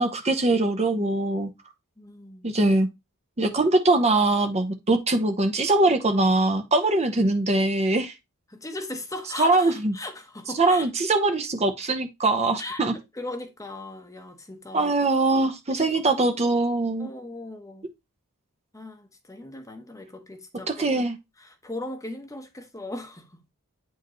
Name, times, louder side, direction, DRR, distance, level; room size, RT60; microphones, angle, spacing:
voice 1, 0.0-1.5 2.4-2.9 3.4-8.1 9.4-9.9 10.6-12.9 14.7-17.1 20.7-21.2, right 2 dB, 30° right, 0.8 m, -22 dB
voice 2, 2.0-2.5 8.5-10.9 12.6-14.9 15.8-15.9 16.1-16.6 17.0-17.9 18.7-21.0 21.4-23.4, left 2 dB, 15° left, 1.0 m, -38 dB
8.9 x 4.6 x 3.1 m
head